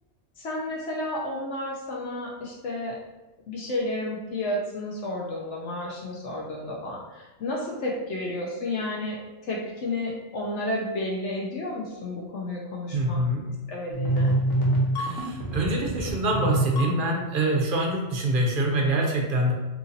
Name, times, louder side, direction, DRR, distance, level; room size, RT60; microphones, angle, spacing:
voice 1, 0.4-3.0 3.5-9.2 9.4-13.2 13.7-14.3, left 1 dB, 70° left, -2 dB, 0.9 m, -31 dB
voice 2, 12.9-13.4 15.0-19.5, right 1 dB, 55° right, 0 dB, 0.6 m, -25 dB
sound 1, 13.9-17.4, right 1 dB, 85° left, 1.2 m, -25 dB
2.9 x 2.7 x 3.8 m, 1.0 s
omnidirectional pair, 1.3 m